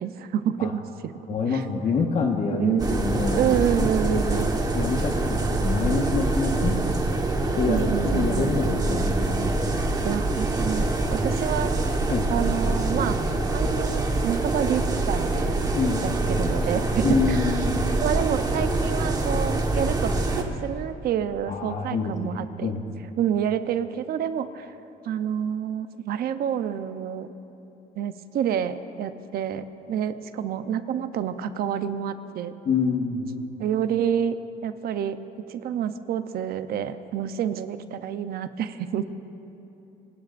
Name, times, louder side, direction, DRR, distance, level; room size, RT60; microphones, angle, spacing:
voice 1, 0.0-1.2 1.5-1.6 2.5-3.0 3.3-4.6 6.6-6.9 7.7-8.5 10.0-11.8 12.3-13.2 13.5-15.6 16.0-17.6 18.0-22.7 23.2-24.7 25.0-27.3 28.0-32.5 33.6-34.4 34.6-35.2 35.5-39.1, right 9 dB, 65° right, 10 dB, 0.8 m, -28 dB
voice 2, 1.3-4.2 4.7-6.7 7.6-9.6 12.1-12.3 15.7-16.1 17.0-17.8 21.5-22.8 32.6-33.3, left 4 dB, 45° left, 1 dB, 1.5 m, -27 dB
sound 1, 2.8-20.4, right 2 dB, 20° right, 1.4 m, -25 dB
26.5 x 19.5 x 2.6 m, 2.9 s
cardioid pair, 110°, 17 cm